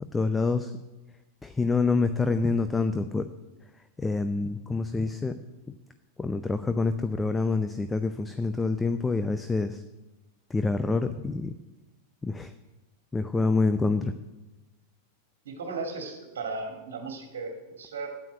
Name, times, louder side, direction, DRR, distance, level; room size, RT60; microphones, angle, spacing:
voice 1, 0.1-0.7 1.4-3.3 4.0-5.4 6.2-9.8 10.5-11.5 12.2-12.5 13.1-14.1, left 3 dB, 10° left, 10 dB, 0.6 m, -26 dB
voice 2, 15.5-18.1, right 3 dB, 60° right, 3 dB, 2.1 m, -36 dB
9.2 x 8.5 x 9.7 m, 1.1 s
figure-of-eight pair, 90°, 0 cm